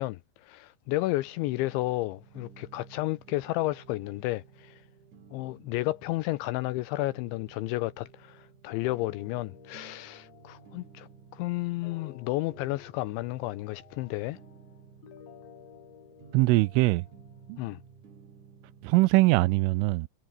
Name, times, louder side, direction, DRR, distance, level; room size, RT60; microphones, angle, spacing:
voice 1, 0.0-4.8 5.3-14.4 17.6-17.8, left 19 dB, 80° left, 2.7 m, -32 dB
sound 1, 0.9-19.5, right 6 dB, 40° right, 4.5 m, -55 dB
sound 2, 8.7-17.9, left 9 dB, 65° left, 4.8 m, -54 dB
voice 2, 16.3-17.1 17.5-17.6 18.8-20.1, right 21 dB, 85° right, 3.1 m, -22 dB
omnidirectional pair, 5.9 m